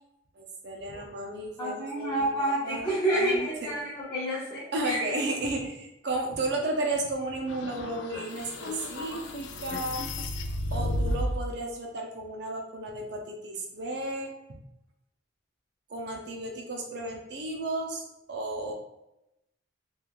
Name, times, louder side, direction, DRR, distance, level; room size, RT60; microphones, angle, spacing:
voice 1, 0.4-3.7 4.7-10.1 10.7-14.3 15.9-18.7, right 2 dB, 65° right, 1 dB, 0.6 m, -33 dB
voice 2, 1.6-5.1, right 1 dB, 25° left, -9 dB, 0.6 m, -29 dB
sound 1, 7.5-11.5, left 1 dB, 75° left, 0.3 m, -33 dB
3.1 x 2.4 x 2.4 m, 0.90 s
head